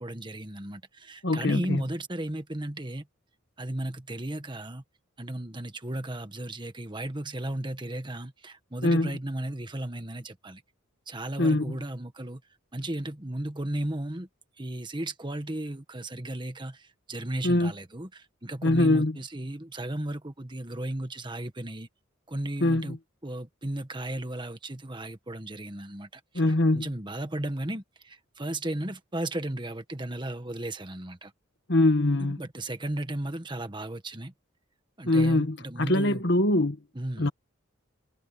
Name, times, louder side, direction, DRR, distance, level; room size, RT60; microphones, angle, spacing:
voice 1, 0.0-3.1 3.6-4.8 5.2-10.6 11.1-12.4 12.7-14.3 14.6-21.9 22.3-23.0 23.2-31.3 32.2-34.3 35.0-36.3 36.9-37.3, right 1 dB, 25° right, 1.5 m, -35 dB
voice 2, 1.2-1.8 8.8-9.1 11.4-11.7 17.4-17.7 18.6-19.2 22.6-23.0 26.3-26.9 31.7-32.4 35.1-36.8 37.2-37.3, left 2 dB, 60° left, 1.6 m, -23 dB
head